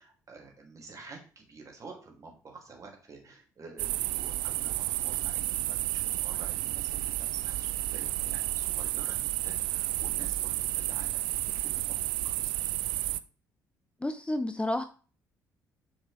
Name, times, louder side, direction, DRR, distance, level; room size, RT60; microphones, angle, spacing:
voice 1, 0.0-4.7 5.0-12.0 12.2-12.7, right 4 dB, 35° right, 1 dB, 2.7 m, -50 dB
sound 1, 3.8-13.2, right 17 dB, 60° right, 0.4 m, -31 dB
voice 2, 14.0-14.8, left 1 dB, 10° left, 10 dB, 0.6 m, -30 dB
7.9 x 6.0 x 3.3 m, 0.37 s
figure-of-eight pair, 45°, 9 cm